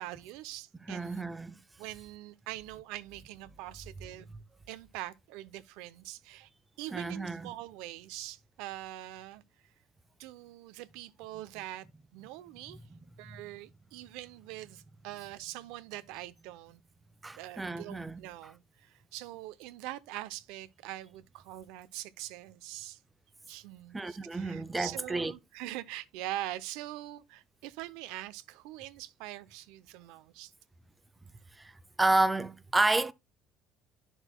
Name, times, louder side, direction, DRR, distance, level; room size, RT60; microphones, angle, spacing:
voice 1, 0.0-1.2 1.8-4.3 4.7-6.5 6.8-9.7 10.2-11.9 12.1-12.8 13.2-16.8 17.4-23.0 23.5-30.5, right 15 dB, 85° right, 0.6 m, -43 dB
voice 2, 0.9-1.6 6.9-7.5 17.2-18.2 23.9-25.3 31.6-31.7 32.0-33.1, right 2 dB, 10° right, 0.4 m, -30 dB
11.0 x 6.2 x 2.2 m
cardioid pair, 150°, 0 cm